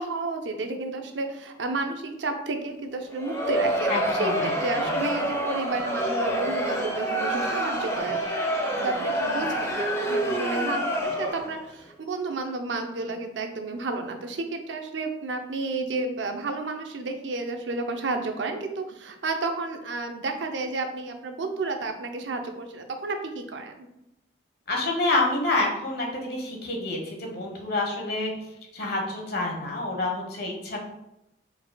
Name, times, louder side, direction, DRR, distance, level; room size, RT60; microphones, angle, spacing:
voice 1, 0.0-8.2 8.8-23.9, right 3 dB, 80° right, 5 dB, 0.6 m, -31 dB
Crowd, 3.1-11.6, right 1 dB, 15° left, 0.7 m, -27 dB
voice 2, 3.9-4.9 24.7-28.3 28.7-30.8, left 2 dB, 60° left, 0 dB, 1.1 m, -28 dB
4.6 x 4.1 x 2.2 m, 0.87 s
head